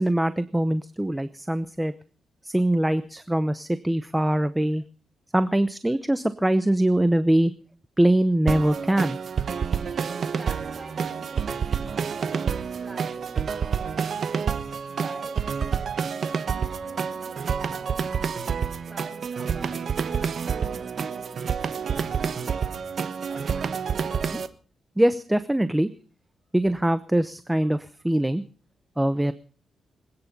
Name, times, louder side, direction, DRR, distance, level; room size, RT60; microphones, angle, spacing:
voice 1, 0.0-1.9 2.4-4.8 5.3-7.5 8.0-9.2 24.3-24.4 25.0-25.9 26.5-28.4 29.0-29.3, right 1 dB, 10° right, 12 dB, 0.8 m, -23 dB
sound 1, 8.5-24.5, right 6 dB, 60° right, 1.2 m, -28 dB
voice 2, 9.7-14.6 14.9-22.4 23.3-23.7, right 2 dB, 25° right, 4 dB, 6.9 m, -46 dB
24.5 x 9.8 x 5.4 m, 0.43 s
cardioid pair, 80°, 0 cm